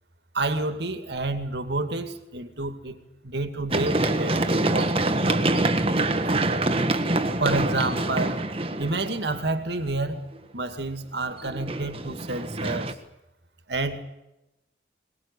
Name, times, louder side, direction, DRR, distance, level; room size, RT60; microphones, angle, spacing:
voice 1, 0.3-3.0 3.2-5.5 7.4-8.4 8.8-10.2 10.5-12.9 13.7-14.0, right 2 dB, 65° right, 9 dB, 2.3 m, -29 dB
Run, 3.7-9.5 11.4-12.9, right 2 dB, 30° right, 1.5 m, -25 dB
22.5 x 20.5 x 8.4 m, 0.93 s
head